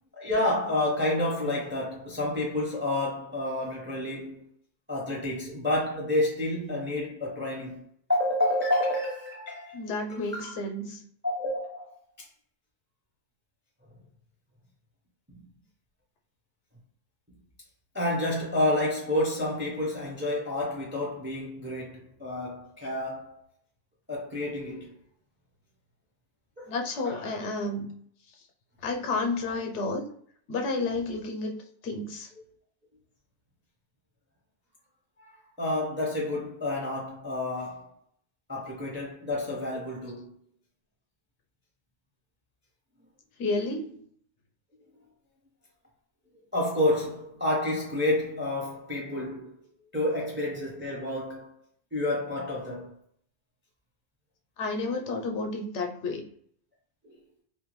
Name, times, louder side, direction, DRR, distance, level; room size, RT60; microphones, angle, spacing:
voice 1, 0.1-4.5 4.9-7.8 8.1-9.8 10.1-10.6 11.2-11.9 17.9-23.4 24.1-24.9 26.6-26.7 27.0-27.3 35.2-37.9 38.5-40.3 46.5-49.5 49.9-51.5 51.9-52.9 57.0-57.2, left 1 dB, 15° right, 0.5 m, -29 dB
voice 2, 9.7-11.0 26.7-27.9 28.8-30.1 30.5-31.6 31.8-32.3 43.4-44.0 54.6-56.3, left 3 dB, 85° left, 0.9 m, -31 dB
2.5 x 2.2 x 3.0 m
omnidirectional pair, 1.2 m